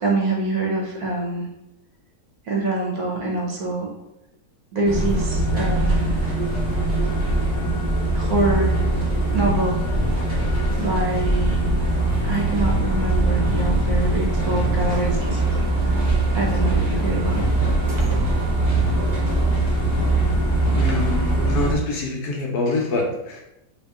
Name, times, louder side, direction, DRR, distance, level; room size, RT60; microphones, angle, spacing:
voice 1, 0.0-1.5 2.5-3.9 4.7-6.2 8.1-8.8 9.3-9.8 10.8-11.6 12.2-15.7 16.3-17.4 18.0-18.2, right 2 dB, 65° right, -1 dB, 1.0 m, -25 dB
sound 1, 4.9-21.8, right 2 dB, 35° right, 0.8 m, -21 dB
voice 2, 20.7-23.4, left 3 dB, 70° left, 0 dB, 1.0 m, -25 dB
2.8 x 2.8 x 3.4 m, 0.88 s
omnidirectional pair, 1.9 m